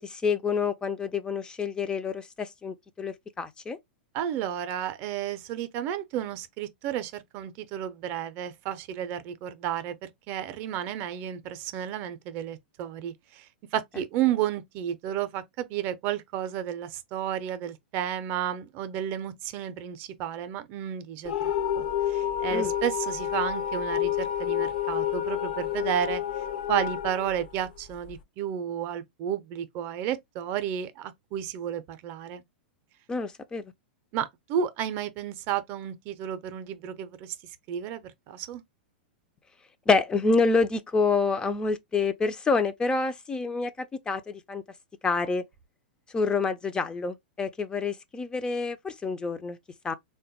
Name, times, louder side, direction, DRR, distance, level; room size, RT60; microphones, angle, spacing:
voice 1, 0.0-3.8 22.5-22.7 33.1-33.6 39.9-44.6 45.0-45.4 46.1-49.6 49.8-49.9, left 4 dB, 15° left, 0.3 m, -27 dB
voice 2, 4.1-26.2 26.7-32.4 34.1-37.4 37.7-38.6, right 10 dB, 40° right, 0.5 m, -32 dB
sound 1, 21.2-28.2, left 10 dB, 65° left, 0.6 m, -29 dB
3.5 x 2.2 x 2.7 m
hypercardioid pair, 100°, 5 cm